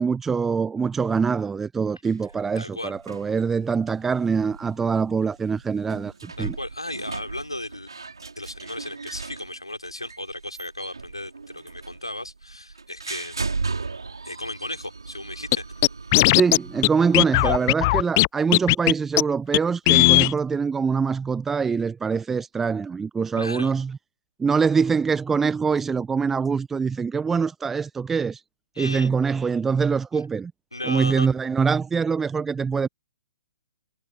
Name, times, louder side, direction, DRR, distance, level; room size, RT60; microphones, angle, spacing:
voice 1, 0.0-6.6 16.3-24.0 24.4-28.4 28.8-30.5 30.8-32.9, right 5 dB, 10° right, 0.8 m, -24 dB
sound 1, 2.0-17.7, right 4 dB, 70° right, 4.9 m, -37 dB
voice 2, 2.6-2.9 6.4-7.9 8.4-13.5 14.2-15.7 17.4-17.6 23.3-23.7 28.8-29.1 30.7-31.3, left 1 dB, 85° left, 3.8 m, -35 dB
Scratching (performance technique), 15.5-15.6 15.8-16.6 16.8-16.9 17.1-18.3 18.5-18.9 19.2-19.3 19.5-19.6 19.9-20.3, left 22 dB, 35° left, 0.3 m, -17 dB
figure-of-eight pair, 120°, 3 cm